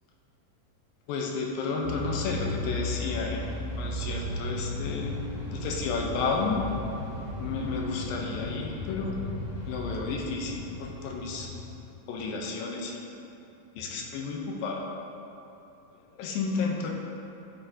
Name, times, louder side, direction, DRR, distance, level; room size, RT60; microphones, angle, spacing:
voice 1, 1.1-3.4 3.8-5.1 5.4-6.7 7.4-9.2 9.7-11.5 12.1-13.0 13.8-14.9 16.1-16.9, left 4 dB, 80° left, 0 dB, 2.5 m, -32 dB
sound 1, 1.8-11.7, left 2 dB, 55° left, 3.2 m, -35 dB
11.5 x 6.1 x 2.8 m, 2.9 s
omnidirectional pair, 4.2 m